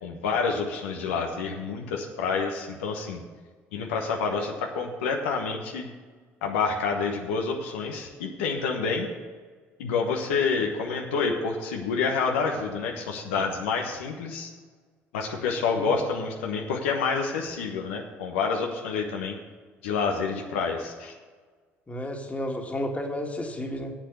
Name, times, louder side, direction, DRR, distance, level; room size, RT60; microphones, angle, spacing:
voice 1, 0.0-3.2 3.7-5.9 6.4-9.1 9.8-14.5 15.1-19.4 19.8-21.1, left 5 dB, 85° left, 2 dB, 1.1 m, -28 dB
voice 2, 21.9-23.9, left 1 dB, 20° left, 2 dB, 1.9 m, -32 dB
8.0 x 7.2 x 8.4 m, 1.5 s
hypercardioid pair, 60°, 7 cm